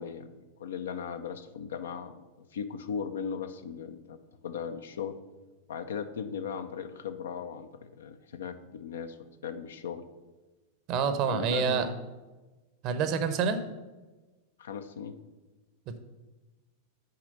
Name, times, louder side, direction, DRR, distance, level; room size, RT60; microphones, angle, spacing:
voice 1, 0.0-2.2 2.5-4.2 4.4-5.1 5.7-9.2 9.4-10.0 11.1-12.0 14.6-15.2, left 7 dB, 65° left, 9 dB, 0.6 m, -37 dB
voice 2, 10.9-11.9 12.8-13.6 15.9-16.0, right 6 dB, 40° right, 10 dB, 0.8 m, -27 dB
6.7 x 5.0 x 6.7 m, 1.2 s
figure-of-eight pair, 90°, 0 cm